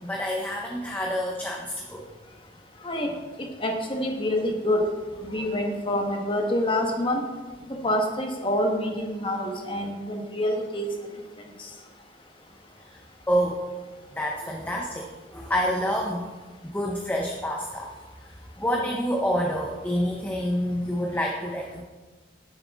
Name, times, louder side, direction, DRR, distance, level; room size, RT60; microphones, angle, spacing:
voice 1, 0.0-2.1 12.9-13.0 13.3-13.6 14.2-16.3 16.6-17.9 18.6-21.8, equal, 10° left, 0 dB, 0.6 m, -28 dB
voice 2, 3.6-4.8 5.2-7.2 7.8-10.9, left 1 dB, 25° left, 2 dB, 1.1 m, -26 dB
9.9 x 7.7 x 3.5 m, 1.3 s
head